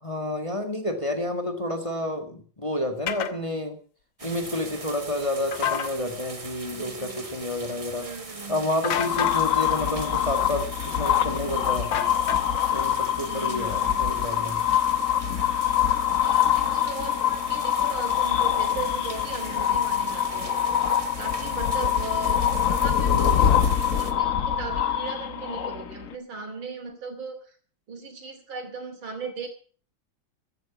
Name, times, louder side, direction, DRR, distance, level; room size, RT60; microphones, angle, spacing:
voice 1, 0.0-3.8 4.2-8.1 8.5-11.9 12.7-14.6, left 1 dB, 15° left, 4 dB, 1.7 m, -30 dB
sound 1, 3.1-3.3 5.5-5.9 8.8-9.4 11.9-12.7, left 9 dB, 75° left, 1.9 m, -28 dB
sound 2, 4.2-24.1, right 3 dB, 20° right, 1.2 m, -41 dB
voice 2, 6.7-7.3 8.0-8.6 13.3-14.2 16.2-20.6 21.2-22.4 22.7-27.6 27.9-29.5, right 4 dB, 85° right, 6 dB, 3.6 m, -38 dB
sound 3, 9.1-26.1, left 9 dB, 50° left, 1.1 m, -24 dB
14.5 x 9.3 x 7.1 m, 0.44 s
omnidirectional pair, 2.1 m